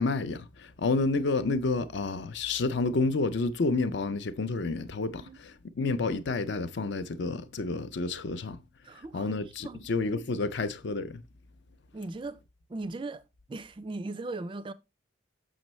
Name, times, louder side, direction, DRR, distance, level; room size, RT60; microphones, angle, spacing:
voice 1, 0.0-8.6 9.1-11.2, left 3 dB, 60° left, 0.5 m, -30 dB
voice 2, 8.8-9.8 11.9-12.4 12.7-13.2 13.5-14.7, right 2 dB, 25° right, 0.3 m, -38 dB
6.3 x 6.1 x 3.0 m
head